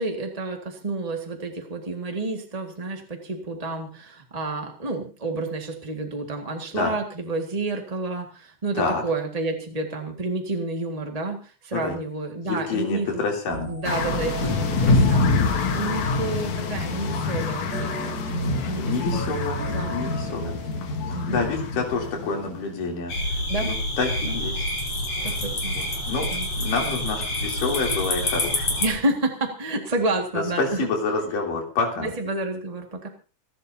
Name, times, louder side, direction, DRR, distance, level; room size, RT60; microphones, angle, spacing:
voice 1, 0.0-13.3 13.7-21.4 23.5-23.8 24.2-24.4 25.2-25.7 26.3-26.5 28.8-30.9 32.0-33.1, right 2 dB, 20° right, 2 dB, 1.0 m, -30 dB
voice 2, 12.4-13.7 18.8-20.6 21.0-23.1 23.6-24.6 25.7-26.3 26.6-28.7 30.6-32.1, left 4 dB, 90° left, 0 dB, 4.7 m, -28 dB
sound 1, 13.5-16.5 17.7-21.0, right 3 dB, 40° right, 3.8 m, -36 dB
sound 2, 13.8-22.9, left 3 dB, 65° left, 2.9 m, -25 dB
sound 3, 23.1-28.9, left 1 dB, 50° left, 5.3 m, -27 dB
29.0 x 12.0 x 2.8 m, 0.36 s
omnidirectional pair, 3.7 m